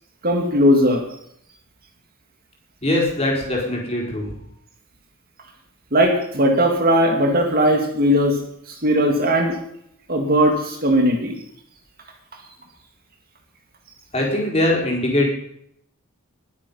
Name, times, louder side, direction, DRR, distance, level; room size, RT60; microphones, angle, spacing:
voice 1, 0.2-1.0 5.9-8.4 8.7-9.6 10.1-11.4, equal, 45° right, 2 dB, 2.2 m, -18 dB
voice 2, 2.8-4.4 14.1-15.3, left 1 dB, 30° left, -2 dB, 4.4 m, -21 dB
21.5 x 8.3 x 5.6 m, 0.73 s
head